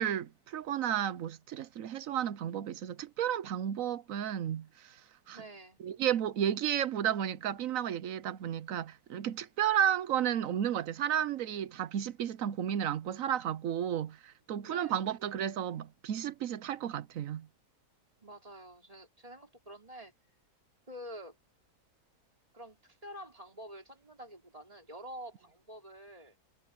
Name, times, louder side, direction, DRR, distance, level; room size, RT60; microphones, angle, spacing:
voice 1, 0.0-5.0 5.3-5.4 5.8-17.5, right 10 dB, 65° right, 1.1 m, -33 dB
voice 2, 5.3-5.8 14.6-15.0 18.2-20.2 20.9-21.4 22.5-26.4, equal, 20° right, 4.3 m, -48 dB
omnidirectional pair, 1.6 m